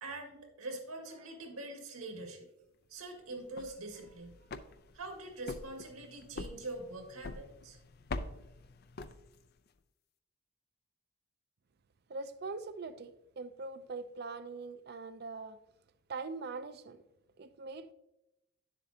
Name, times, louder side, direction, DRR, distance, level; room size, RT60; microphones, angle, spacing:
voice 1, 0.0-2.5 2.9-4.6 4.9-7.8, right 2 dB, 85° right, 1.9 m, -44 dB
sound 1, 3.4-9.7, left 3 dB, 45° left, 0.4 m, -45 dB
voice 2, 12.1-15.6 16.1-17.0 17.4-17.9, right 3 dB, 45° right, 0.4 m, -42 dB
10.5 x 7.4 x 2.8 m
head